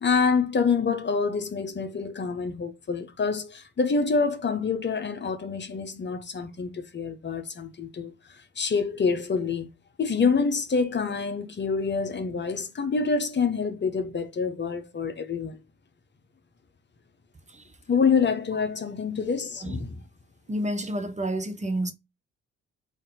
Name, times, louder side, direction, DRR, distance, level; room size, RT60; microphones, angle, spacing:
voice 1, 0.0-9.7 10.0-15.6 17.9-20.0, left 5 dB, 35° left, 0.9 m, -26 dB
voice 2, 20.5-21.9, right 1 dB, 20° right, 0.8 m, -29 dB
3.7 x 2.7 x 3.8 m
hypercardioid pair, 40°, 32 cm